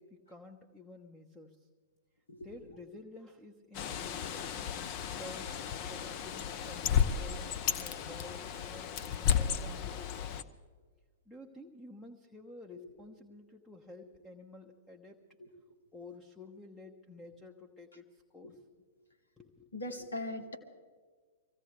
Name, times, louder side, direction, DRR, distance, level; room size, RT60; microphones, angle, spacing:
voice 1, 0.0-1.6 2.4-4.7 5.2-5.5 5.9-10.4 11.3-15.2 15.9-18.6 19.4-20.1, left 2 dB, 10° left, 2 dB, 1.1 m, -51 dB
Bird, 3.7-10.4, left 8 dB, 45° left, 0.9 m, -33 dB
voice 2, 19.7-20.6, left 1 dB, 80° left, 4 dB, 2.1 m, -40 dB
24.0 x 16.0 x 3.4 m, 1.5 s
figure-of-eight pair, 110°, 0 cm